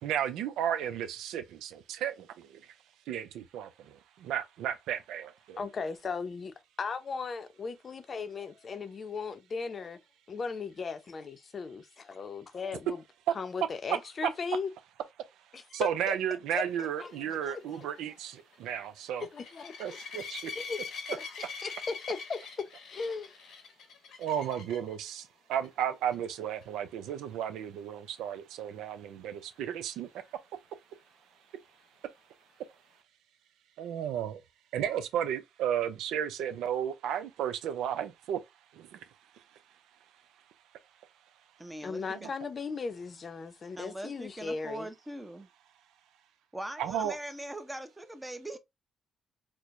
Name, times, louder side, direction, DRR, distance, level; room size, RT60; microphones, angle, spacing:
voice 1, 0.0-2.7 3.1-5.6 13.3-13.4 14.2-14.3 15.7-19.3 19.8-20.5 24.2-30.1 33.8-34.4 34.7-38.4 38.7-39.1 39.3-39.4 42.2-42.3 46.8-47.2, right 9 dB, 90° right, 0.5 m, -33 dB
voice 2, 5.6-10.0 10.3-13.0 13.4-14.7 15.8-16.1 16.5-16.6 17.0-17.1 17.4-17.9 19.3-20.0 20.5-20.8 21.4-22.4 22.9-23.3 41.8-44.9, left 4 dB, 40° left, 0.6 m, -37 dB
sound 1, 17.0-24.9 25.5-25.8 26.1-26.2 26.6-26.7 30.3-30.4, left 5 dB, 75° left, 0.8 m, -44 dB
voice 3, 41.6-42.0 43.8-45.5 46.5-48.6, right 1 dB, 10° right, 0.7 m, -41 dB
4.4 x 2.1 x 2.5 m
cardioid pair, 90°, 0 cm